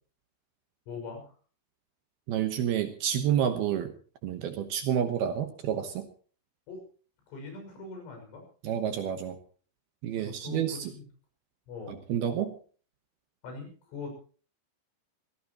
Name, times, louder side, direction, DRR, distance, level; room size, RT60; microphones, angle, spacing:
voice 1, 0.9-1.3 6.7-6.8 7.3-8.4 10.2-11.0 11.7-12.0 13.4-14.1, left 4 dB, 85° left, 4 dB, 8.5 m, -41 dB
voice 2, 2.3-3.9 4.2-6.1 8.6-9.4 10.0-10.9 11.9-12.6, right 9 dB, 70° right, 7 dB, 2.6 m, -29 dB
24.5 x 16.5 x 3.0 m, 0.40 s
omnidirectional pair, 5.5 m